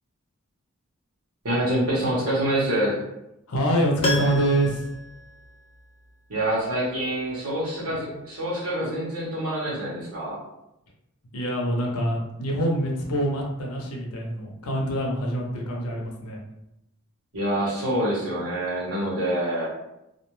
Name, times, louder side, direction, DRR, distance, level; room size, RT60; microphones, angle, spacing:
voice 1, 1.4-3.0 6.3-10.4 17.3-19.7, right 1 dB, 85° right, -6 dB, 1.0 m, -26 dB
voice 2, 3.5-4.9 7.8-8.0 11.3-16.4, right 1 dB, 75° left, -1 dB, 0.7 m, -25 dB
Piano, 4.0-6.1 6.4-6.5, left 3 dB, 25° left, 0.3 m, -31 dB
2.4 x 2.1 x 3.0 m, 0.87 s
head